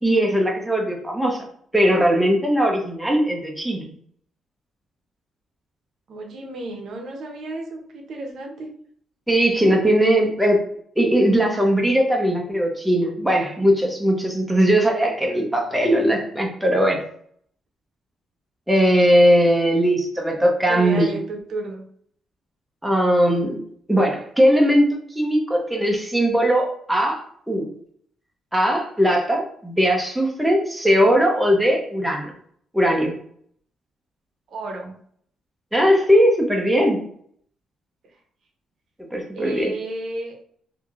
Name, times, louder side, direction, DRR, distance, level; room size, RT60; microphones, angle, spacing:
voice 1, 0.0-1.4 1.7-3.9 9.3-10.6 11.0-17.0 18.7-21.1 22.8-23.6 23.9-24.9 25.1-27.6 28.5-32.3 32.7-33.1 35.7-37.0 39.1-39.7, equal, 5° right, 0 dB, 0.5 m, -19 dB
voice 2, 6.1-8.7 20.7-21.8 34.5-34.9 39.3-40.4, right 2 dB, 65° right, 2 dB, 0.6 m, -32 dB
3.2 x 2.6 x 2.3 m, 0.62 s
cardioid pair, 130°, 0 cm